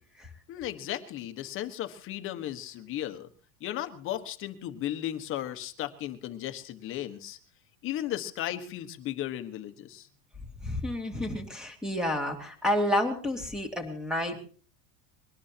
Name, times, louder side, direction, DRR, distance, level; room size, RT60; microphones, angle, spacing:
voice 1, 0.5-3.3 3.6-7.4 7.8-10.1, left 12 dB, 30° left, 8 dB, 1.3 m, -35 dB
voice 2, 10.6-14.4, left 1 dB, ahead, 4 dB, 2.3 m, -30 dB
22.5 x 18.5 x 2.9 m, 0.43 s
supercardioid pair, 170°, 43 cm